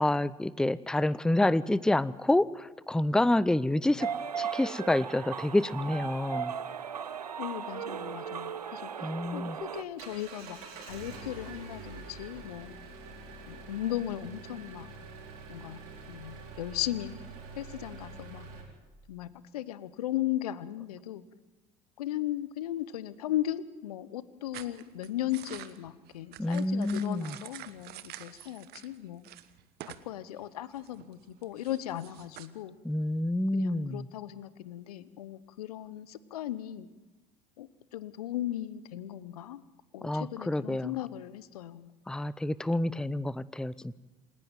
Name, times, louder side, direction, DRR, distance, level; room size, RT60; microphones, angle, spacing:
voice 1, 0.0-4.1 4.4-6.5 9.0-9.6 26.4-27.3 32.8-34.0 40.0-40.9 42.1-43.9, left 1 dB, 5° left, 19 dB, 0.6 m, -28 dB
sound 1, 4.0-9.8, right 7 dB, 90° right, 0.6 m, -37 dB
voice 2, 7.4-9.0 9.3-12.8 13.5-14.9 15.5-15.8 16.1-17.2 17.6-18.5 19.1-21.2 22.0-29.2 29.8-32.8 33.5-36.9 37.6-39.6 39.9-42.0, left 13 dB, 75° left, 17 dB, 0.9 m, -37 dB
Engine, 9.6-18.6, right 4 dB, 70° right, 4.5 m, -46 dB
sound 2, 24.5-29.0 29.2-30.1 30.4-32.5, right 14 dB, 55° right, 1.2 m, -48 dB
27.5 x 11.0 x 9.0 m, 1.1 s
hypercardioid pair, 65°, 19 cm